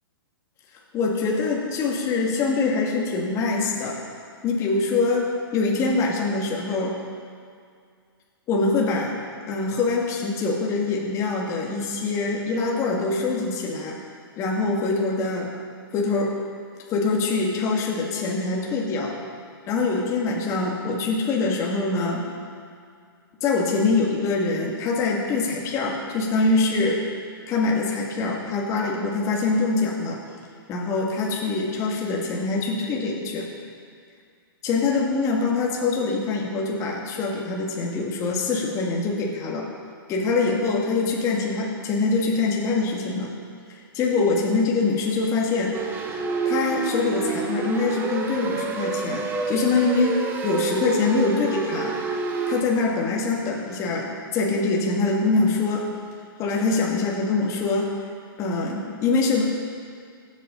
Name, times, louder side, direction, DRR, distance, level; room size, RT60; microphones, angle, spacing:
voice 1, 0.9-4.1 4.4-7.0 8.5-9.2 9.5-14.0 14.4-15.5 15.9-16.4 16.9-19.2 19.7-22.3 23.4-27.0 27.5-30.2 30.7-33.5 34.6-39.7 40.1-43.3 43.7-45.8 46.5-52.0 52.5-55.9 56.4-58.0 58.4-59.4, left 3 dB, 25° left, -2 dB, 1.8 m, -24 dB
sound 1, 45.7-52.6, right 4 dB, 15° right, 0.9 m, -28 dB
18.5 x 8.4 x 3.8 m, 2.2 s
hypercardioid pair, 145°, 13 cm